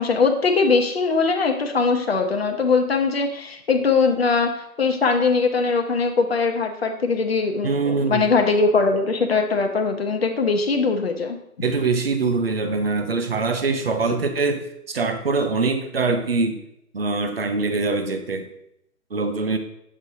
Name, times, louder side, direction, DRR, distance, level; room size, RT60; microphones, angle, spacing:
voice 1, 0.0-11.4, left 4 dB, 40° left, 4 dB, 0.8 m, -21 dB
voice 2, 7.6-8.3 11.6-16.6 16.9-18.5 19.1-19.6, right 3 dB, 40° right, 7 dB, 0.6 m, -23 dB
7.2 x 6.4 x 2.7 m, 0.79 s
hypercardioid pair, 165°, 45 cm